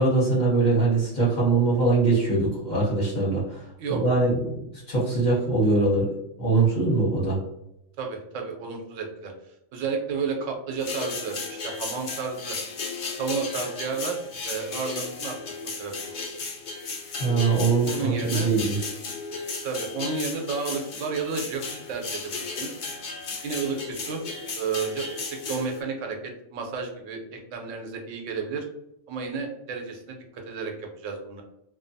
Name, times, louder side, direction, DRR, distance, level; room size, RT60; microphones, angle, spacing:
voice 1, 0.0-3.6 3.9-6.1 6.4-7.4 17.2-18.8, right 3 dB, 40° left, -5 dB, 0.8 m, -22 dB
voice 2, 8.0-9.3 9.7-12.6 13.1-14.2 14.4-15.4 15.8-16.1 17.8-18.5 19.6-22.8 23.4-24.2 24.6-25.0 25.5-26.2 26.5-28.6 29.1-31.4, right 5 dB, 80° right, 3 dB, 0.9 m, -31 dB
sound 1, 10.8-25.8, left 4 dB, 60° left, 0.5 m, -35 dB
2.6 x 2.2 x 2.6 m, 0.81 s
omnidirectional pair, 1.3 m